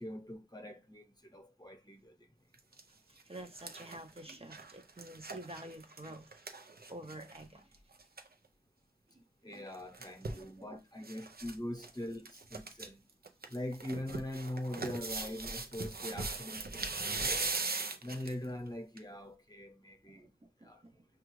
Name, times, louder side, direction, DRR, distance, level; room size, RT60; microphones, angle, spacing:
voice 1, 0.0-2.3 9.4-13.0 13.5-17.6 18.0-20.3 20.6-20.8, left 1 dB, 25° left, 0.8 m, -42 dB
sound 1, 2.5-2.8 3.2-7.4 7.7-7.8 8.0-8.3 9.5-10.4 11.0-11.5 11.8-11.9 12.2-12.9 13.2-18.4 19.0-19.1, right 3 dB, 85° right, 0.6 m, -39 dB
voice 2, 3.1-6.3 6.9-7.7 10.3-10.5 20.1-20.3 20.6-20.9, right 1 dB, 40° right, 0.6 m, -48 dB
6.0 x 2.4 x 3.1 m
wide cardioid pair, 50°, 15 cm